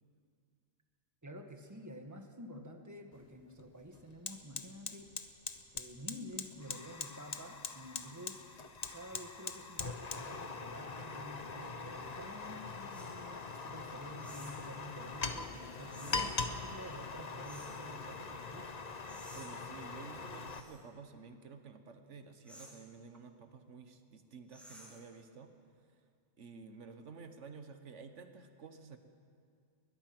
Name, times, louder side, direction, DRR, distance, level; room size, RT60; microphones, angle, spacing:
voice 1, 1.2-5.1 5.7-8.4 8.9-18.9, equal, 15° right, 4 dB, 1.5 m, -50 dB
Fire, 3.1-3.3 3.6-20.6, left 4 dB, 40° left, 1.0 m, -42 dB
sound 1, 12.9-13.2 14.2-14.7 15.9-16.3 17.4-17.8 19.1-19.5 20.5-20.8 22.5-22.8 24.5-25.1, equal, ahead, 3.6 m, -54 dB
voice 2, 19.3-25.5 25.9-26.0 26.4-29.0, right 5 dB, 90° right, 8 dB, 1.5 m, -52 dB
21.0 x 20.5 x 6.0 m, 2.2 s
omnidirectional pair, 1.2 m